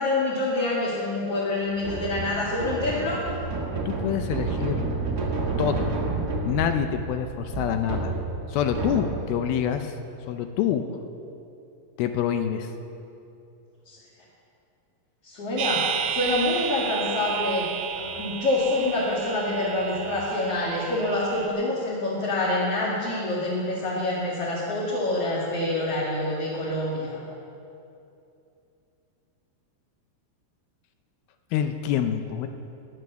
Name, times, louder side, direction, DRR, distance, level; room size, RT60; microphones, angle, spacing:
voice 1, 0.0-3.2 13.9-14.0 15.2-17.7 17.9-27.2, left 2 dB, 45° left, -6 dB, 2.6 m, -26 dB
sound 1, 1.8-9.5, right 3 dB, 60° right, 1.0 m, -30 dB
voice 2, 3.9-4.8 5.6-5.9 6.5-8.2 8.5-10.0 10.3-10.8 12.0-12.7 31.5-32.5, left 9 dB, 80° left, 7 dB, 2.3 m, -26 dB
sound 2, 15.6-21.5, right 8 dB, 85° right, 3.2 m, -32 dB
17.0 x 10.5 x 6.8 m, 2.7 s
omnidirectional pair, 4.8 m